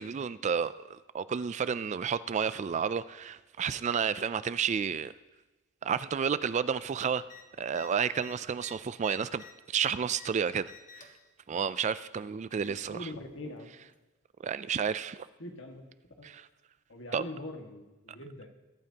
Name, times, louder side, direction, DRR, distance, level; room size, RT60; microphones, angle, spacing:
voice 1, 0.0-5.1 5.8-7.2 7.6-11.1 11.5-13.1 14.4-15.3 16.2-16.5 17.1-17.2, right 7 dB, 35° right, 15 dB, 0.3 m, -31 dB
sound 1, 7.2-7.4 7.7-7.9 8.2-10.3 10.6-11.2 12.2-12.9 13.9-14.0, left 5 dB, 40° left, 1.4 m, -51 dB
voice 2, 12.9-13.7 15.4-15.9 16.2-16.3 16.9-18.5, left 1 dB, 65° left, 2 dB, 1.8 m, -42 dB
22.0 x 12.5 x 2.9 m, 1.1 s
head